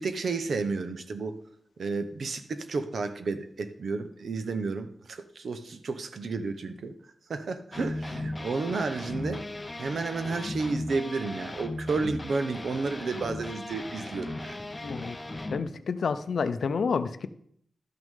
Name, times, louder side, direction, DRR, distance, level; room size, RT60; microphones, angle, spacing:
voice 1, 0.0-1.4 1.8-6.9 7.3-9.4 9.8-14.6, right 4 dB, 65° right, 10 dB, 0.8 m, -32 dB
sound 1, 7.7-15.6, left 2 dB, 20° left, 0.7 m, -37 dB
voice 2, 14.8-15.2 15.5-17.3, left 5 dB, 65° left, 11 dB, 0.5 m, -29 dB
12.0 x 6.2 x 3.7 m, 0.66 s
wide cardioid pair, 150°, 0 cm